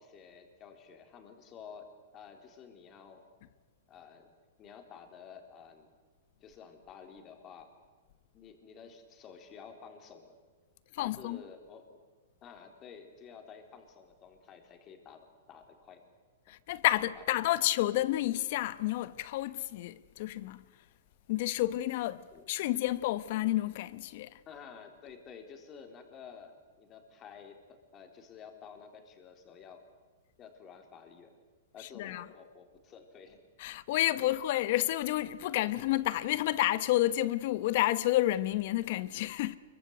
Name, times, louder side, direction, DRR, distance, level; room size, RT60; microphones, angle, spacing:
voice 1, 0.0-3.3 3.9-4.3 4.6-5.9 6.4-7.7 8.3-10.4 11.0-12.0 12.4-16.0 16.9-17.6 22.3-22.5 24.5-29.8 30.4-31.3 31.7-33.4 34.0-34.2, left 6 dB, 25° left, 3.7 m, -51 dB
voice 2, 10.9-11.4 16.5-20.6 21.3-24.4 31.8-32.2 33.6-39.6, left 15 dB, 55° left, 1.1 m, -30 dB
24.5 x 23.0 x 8.1 m
hypercardioid pair, 145°, 0 cm